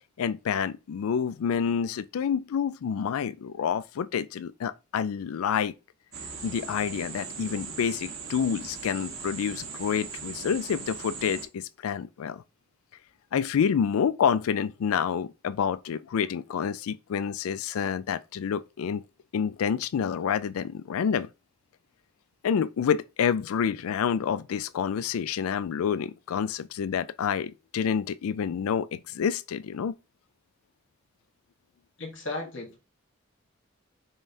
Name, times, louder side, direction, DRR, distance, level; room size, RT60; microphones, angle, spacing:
voice 1, 0.2-5.7 6.4-12.4 13.3-19.0 19.3-21.3 22.4-29.9, left 7 dB, 80° left, 0.3 m, -28 dB
sound 1, 6.1-11.5, right 5 dB, 80° right, 1.2 m, -39 dB
voice 2, 32.0-32.8, left 2 dB, 60° left, 1.2 m, -35 dB
5.4 x 3.3 x 2.7 m
head